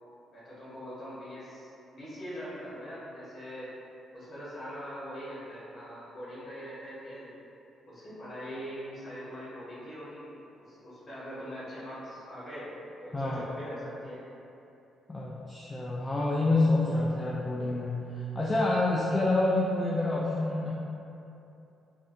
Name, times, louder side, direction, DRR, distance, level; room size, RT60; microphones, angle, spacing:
voice 1, 0.3-3.7 4.1-7.3 7.8-10.2 10.6-12.7 13.0-14.2, equal, 40° left, -10 dB, 1.5 m, -42 dB
voice 2, 15.1-20.7, left 2 dB, 20° left, -5 dB, 0.3 m, -27 dB
3.3 x 2.5 x 2.7 m, 2.9 s
cardioid pair, 90°, 0 cm